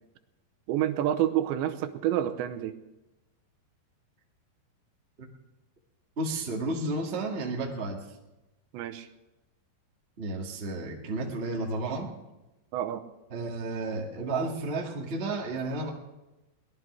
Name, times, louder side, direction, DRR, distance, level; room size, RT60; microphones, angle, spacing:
voice 1, 0.7-2.8 8.7-9.1 12.7-13.0, right 12 dB, 90° right, 8 dB, 3.1 m, -28 dB
voice 2, 6.2-8.2 10.2-12.1 13.3-15.9, right 2 dB, 30° right, 0 dB, 1.0 m, -32 dB
23.0 x 18.5 x 3.4 m, 1.0 s
omnidirectional pair, 5.1 m